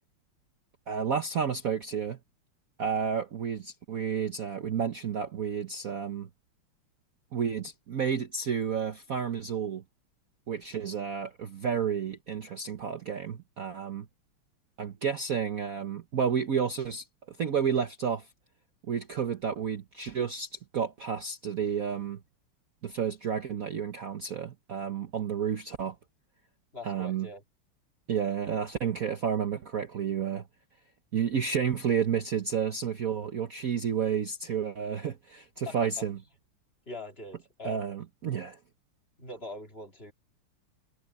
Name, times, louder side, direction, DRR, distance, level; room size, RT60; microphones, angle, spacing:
voice 1, 0.9-2.2 2.8-6.3 7.3-9.8 10.5-14.1 14.8-18.3 18.9-22.2 22.8-25.9 26.8-27.3 28.1-30.4 31.1-36.2 37.6-38.6, right 7 dB, 50° right, 1.2 m, -31 dB
voice 2, 26.7-27.4 35.7-36.0 36.9-37.9 39.2-40.1, left 2 dB, 25° left, 2.6 m, -42 dB
omnidirectional pair, 2.4 m